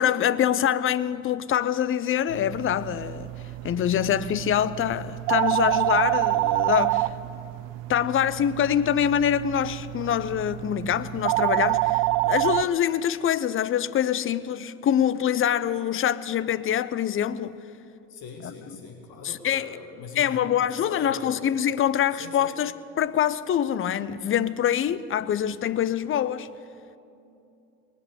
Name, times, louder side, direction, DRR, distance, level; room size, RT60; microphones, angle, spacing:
voice 1, 0.0-3.3 3.6-7.1 7.9-17.6 18.4-18.8 19.2-19.7 20.2-26.5, left 10 dB, 30° left, 0.6 m, -25 dB
sound 1, 2.3-12.6, right 20 dB, 60° right, 0.5 m, -27 dB
voice 2, 18.1-21.4 22.1-22.5, left 4 dB, 55° left, 1.9 m, -41 dB
20.0 x 7.9 x 8.2 m
hypercardioid pair, 65°, 44 cm